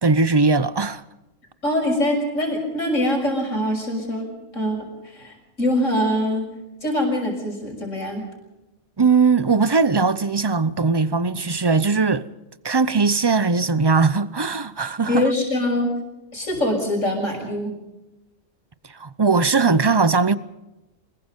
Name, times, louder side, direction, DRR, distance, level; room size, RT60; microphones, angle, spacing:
voice 1, 0.0-1.0 9.0-12.2 12.6-15.2 18.9-20.3, right 4 dB, 25° right, 0.6 m, -19 dB
voice 2, 1.6-6.5 6.8-8.3 15.1-15.9 16.3-17.7, left 1 dB, 75° left, 6.6 m, -23 dB
26.5 x 21.0 x 5.3 m
omnidirectional pair, 1.3 m